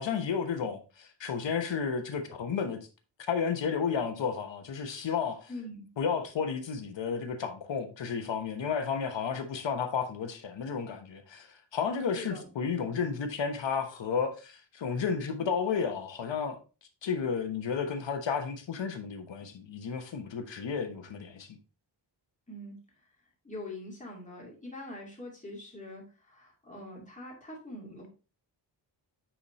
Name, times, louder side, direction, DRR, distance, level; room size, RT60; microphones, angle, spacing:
voice 1, 0.0-2.8 3.3-5.5 6.0-16.6 17.0-21.6, left 6 dB, 70° left, 1.1 m, -32 dB
voice 2, 5.5-5.9 12.1-12.5 22.5-22.8 23.4-28.1, left 1 dB, 15° left, 2.3 m, -43 dB
9.4 x 4.2 x 3.1 m
wide cardioid pair, 180°, 46 cm